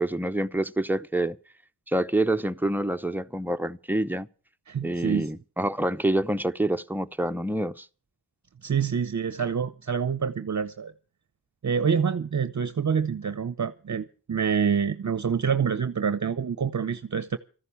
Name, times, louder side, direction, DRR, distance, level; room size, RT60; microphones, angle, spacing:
voice 1, 0.0-1.4 1.9-4.3 4.8-7.9, right 1 dB, 5° right, 0.7 m, -27 dB
voice 2, 4.7-5.3 8.6-10.9 11.6-17.4, right 6 dB, 45° right, 0.7 m, -27 dB
14.0 x 11.0 x 7.0 m
cardioid pair, 50°, 40 cm